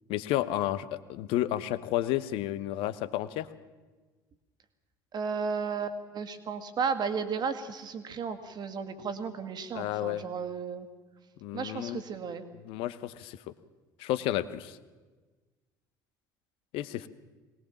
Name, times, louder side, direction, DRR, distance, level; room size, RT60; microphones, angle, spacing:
voice 1, 0.1-3.5 9.7-10.2 11.4-12.0 12.6-13.4 14.0-14.8 16.7-17.1, left 13 dB, 55° left, 15 dB, 1.0 m, -31 dB
voice 2, 5.1-10.9 11.5-12.4, right 5 dB, 40° right, 8 dB, 2.0 m, -34 dB
22.5 x 19.5 x 7.3 m, 1.3 s
figure-of-eight pair, 60°, 11 cm